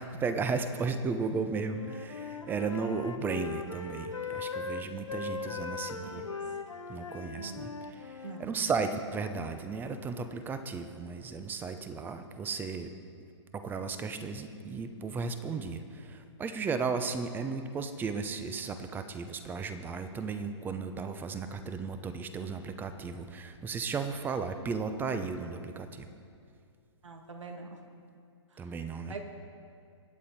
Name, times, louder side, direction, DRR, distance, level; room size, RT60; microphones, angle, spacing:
voice 1, 0.0-6.2 6.9-12.9 13.5-26.1 28.6-29.1, right 4 dB, 10° right, 9 dB, 0.7 m, -35 dB
Wind instrument woodwind instrument, 1.7-8.5, left 4 dB, 90° left, 1.1 m, -39 dB
voice 2, 5.5-6.4 7.4-7.6 8.2-8.6 27.0-27.8 28.5-28.6 29.1-29.2, right 4 dB, 80° right, 4 dB, 2.1 m, -45 dB
23.0 x 8.5 x 4.3 m, 2.4 s
hypercardioid pair, 135°, 16 cm